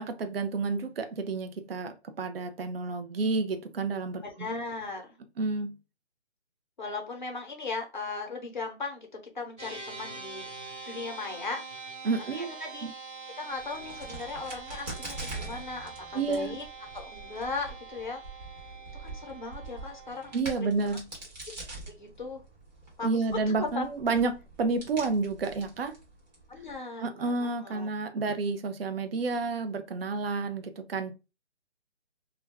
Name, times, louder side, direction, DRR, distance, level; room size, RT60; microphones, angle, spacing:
voice 1, 0.0-4.2 5.4-5.8 12.0-12.5 12.8-12.9 16.1-16.6 20.3-21.1 23.0-25.9 27.0-31.2, right 4 dB, 55° right, 0.5 m, -30 dB
voice 2, 4.2-5.1 6.8-9.1 9.3-11.6 12.3-13.0 13.4-16.6 16.9-18.2 18.9-20.3 20.6-21.0 21.9-22.4 23.0-23.8 26.5-27.9, left 3 dB, 45° left, 0.7 m, -38 dB
sound 1, 9.6-20.4, right 4 dB, 10° right, 1.2 m, -44 dB
Crack, 13.5-26.8, right 2 dB, 35° right, 1.1 m, -44 dB
2.3 x 2.2 x 3.3 m
hypercardioid pair, 175°, 35 cm